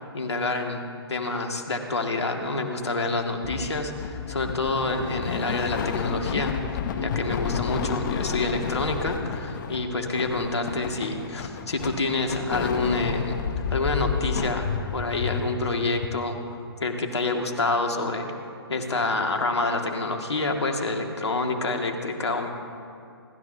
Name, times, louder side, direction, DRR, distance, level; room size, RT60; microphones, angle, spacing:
voice 1, 0.1-6.6 7.0-13.4 13.7-14.7 14.9-16.4 16.8-18.3 18.7-22.5, left 2 dB, 85° left, 3 dB, 2.0 m, -27 dB
sound 1, 3.4-16.1, left 7 dB, 45° left, 0.9 m, -31 dB
29.5 x 13.0 x 2.7 m, 2.4 s
hypercardioid pair, 135°, 14 cm